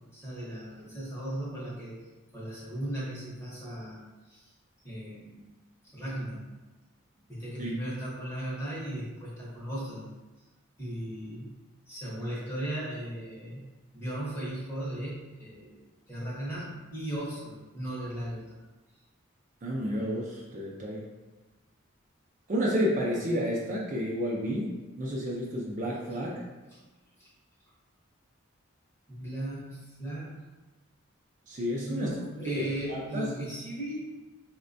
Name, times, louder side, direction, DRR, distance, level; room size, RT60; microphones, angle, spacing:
voice 1, 0.1-2.0 2.3-4.0 4.3-4.5 4.8-5.4 5.8-6.4 7.3-10.0 10.8-11.5 11.9-13.6 13.9-18.6 26.7-26.8 27.2-27.3 29.1-30.3 31.8-34.1, right 1 dB, 10° left, -7 dB, 0.8 m, -37 dB
voice 2, 19.6-21.1 22.5-24.7 25.0-26.4 31.5-32.1 32.9-33.2, equal, 35° right, -3 dB, 0.4 m, -30 dB
4.1 x 2.1 x 2.5 m, 1.2 s
head